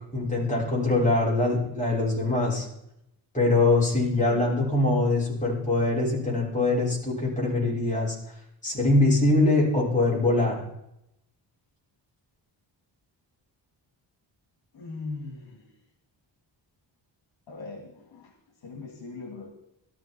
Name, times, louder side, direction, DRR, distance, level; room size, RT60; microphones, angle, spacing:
voice 1, 0.1-2.7 3.3-8.1 8.6-10.6, left 2 dB, 15° left, -5 dB, 6.1 m, -23 dB
voice 2, 14.7-15.4 17.5-18.3 18.6-19.5, left 3 dB, 70° left, 2 dB, 2.7 m, -39 dB
17.0 x 13.5 x 4.6 m, 0.81 s
wide cardioid pair, 140°, 45 cm